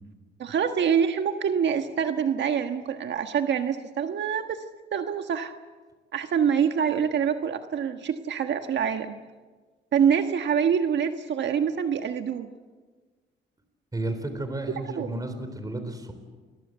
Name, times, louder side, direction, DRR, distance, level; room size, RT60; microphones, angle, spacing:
voice 1, 0.4-4.6 4.9-5.5 6.1-9.2 9.9-12.5 14.9-15.1, right 7 dB, 65° right, 6 dB, 1.5 m, -25 dB
voice 2, 13.9-16.1, right 2 dB, 20° right, 8 dB, 4.0 m, -32 dB
28.5 x 22.5 x 8.0 m, 1.4 s
cardioid pair, 90°, 20 cm